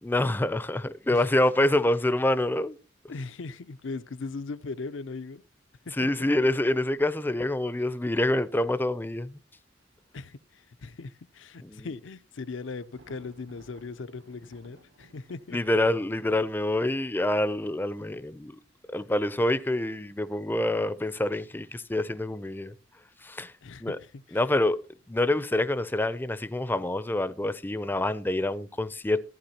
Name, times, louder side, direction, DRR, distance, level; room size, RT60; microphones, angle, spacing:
voice 1, 0.0-2.8 6.0-9.4 11.6-11.9 15.5-18.6 18.9-22.7 23.2-23.5 23.8-24.0 24.3-24.8 25.1-29.2, left 1 dB, 10° left, 0.4 m, -26 dB
voice 2, 3.1-5.4 6.0-6.1 10.1-15.6 23.6-24.4, left 3 dB, 80° left, 0.6 m, -39 dB
Thunder, 12.8-18.6, right 2 dB, 85° right, 2.0 m, -58 dB
14.5 x 9.9 x 2.8 m
head